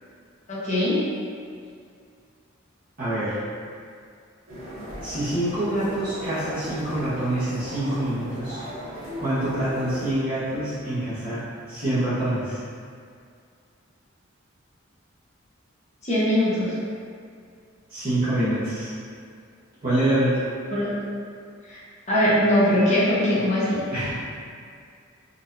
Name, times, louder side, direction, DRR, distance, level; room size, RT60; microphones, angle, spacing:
voice 1, 0.5-1.1 16.0-16.7 20.7-20.9 21.7-21.8 22.1-23.8, left 1 dB, 35° left, -9 dB, 0.9 m, -21 dB
voice 2, 3.0-3.4 5.0-8.6 9.2-12.6 17.9-18.9 19.8-20.5 23.9-24.1, right 1 dB, 45° right, -14 dB, 1.1 m, -26 dB
sound 1, 4.5-10.1, equal, 85° right, 1.1 m, -37 dB
4.0 x 2.6 x 2.6 m, 2.3 s
head